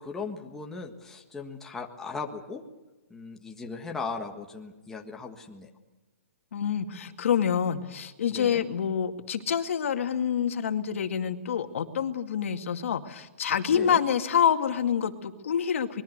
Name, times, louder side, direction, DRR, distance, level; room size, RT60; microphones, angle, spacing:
voice 1, 0.0-2.6 3.1-5.7 8.3-8.6 13.7-14.0, left 4 dB, 5° left, 1 dB, 1.5 m, -38 dB
voice 2, 6.5-16.0, left 8 dB, 60° left, 7 dB, 2.2 m, -27 dB
25.5 x 21.5 x 6.7 m, 1.1 s
hypercardioid pair, 165°, 8 cm